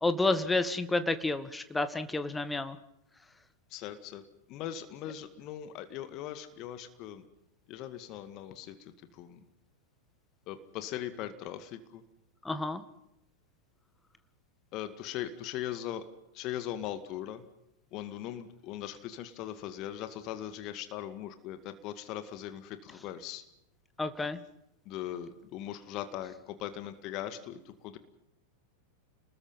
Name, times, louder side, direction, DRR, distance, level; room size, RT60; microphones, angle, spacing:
voice 1, 0.0-2.8 12.5-12.8 24.0-24.4, left 2 dB, 10° left, 11 dB, 1.8 m, -30 dB
voice 2, 3.7-4.2 4.5-7.2 7.7-9.4 10.5-12.0 14.7-16.0 16.3-17.4 17.9-23.4 24.9-28.0, left 11 dB, 40° left, 10 dB, 2.0 m, -40 dB
29.5 x 20.5 x 5.8 m, 0.83 s
figure-of-eight pair, 90°, 0 cm